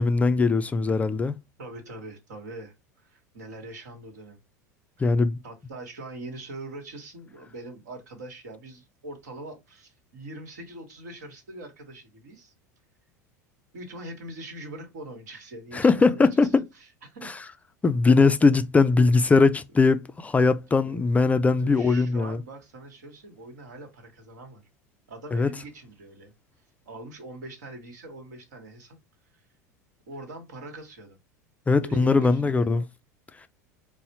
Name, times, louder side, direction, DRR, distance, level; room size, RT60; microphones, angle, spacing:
voice 1, 0.0-1.3 5.0-5.4 15.7-16.6 17.2-17.4 17.8-22.4 25.3-25.5 31.7-32.8, left 4 dB, 15° left, 0.3 m, -20 dB
voice 2, 1.6-4.4 5.0-5.1 5.4-12.5 13.7-17.3 20.7-21.0 21.6-24.6 25.1-26.3 26.9-29.0 29.3-29.4 30.1-31.2 31.8-32.9, right 2 dB, 75° right, 1.2 m, -42 dB
4.0 x 2.0 x 2.7 m
hypercardioid pair, 80°, 9 cm